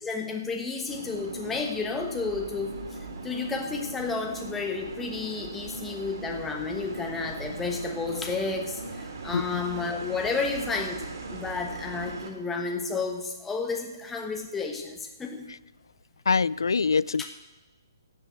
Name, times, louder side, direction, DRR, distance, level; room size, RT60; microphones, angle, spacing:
voice 1, 0.0-2.8 3.2-11.0 11.3-15.5 17.2-17.3, left 4 dB, 10° left, 2 dB, 1.2 m, -31 dB
sound 1, 0.9-12.3, right 3 dB, 60° right, 2.8 m, -39 dB
voice 2, 16.3-17.3, left 5 dB, 85° left, 22 dB, 0.4 m, -24 dB
16.0 x 5.5 x 8.9 m, 1.2 s
hypercardioid pair, 150°, 2 cm